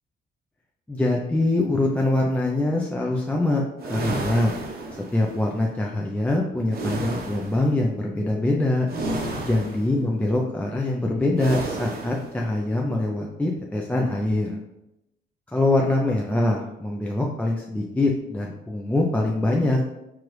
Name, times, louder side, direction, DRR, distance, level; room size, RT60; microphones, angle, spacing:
voice 1, 0.9-4.5 5.1-8.9 9.4-14.6 15.5-19.8, left 2 dB, 5° left, -1 dB, 0.4 m, -24 dB
sound 1, 3.8-5.4 6.7-7.6 8.9-10.0 11.4-12.3, right 2 dB, 50° right, 0.8 m, -31 dB
4.7 x 2.5 x 3.0 m, 0.89 s
cardioid pair, 90°, 20 cm